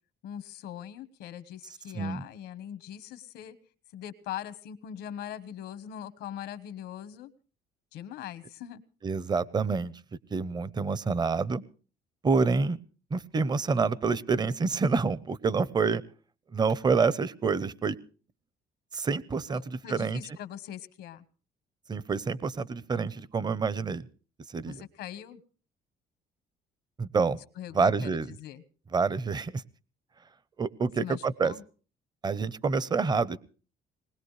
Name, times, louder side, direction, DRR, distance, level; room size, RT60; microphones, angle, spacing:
voice 1, 0.2-3.6 3.9-7.3 7.9-8.8 19.5-21.2 24.7-25.4 27.6-28.6 31.0-31.6, left 10 dB, 85° left, 14 dB, 1.2 m, -41 dB
voice 2, 9.0-9.9 10.3-11.6 12.2-12.8 13.1-16.0 16.5-18.0 18.9-20.2 21.9-24.1 24.5-24.8 27.0-27.4 27.7-28.3 28.9-29.6 30.6-31.5 32.2-33.4, right 4 dB, 25° right, 20 dB, 0.7 m, -27 dB
20.0 x 20.0 x 3.2 m, 0.37 s
cardioid pair, 110°, 17 cm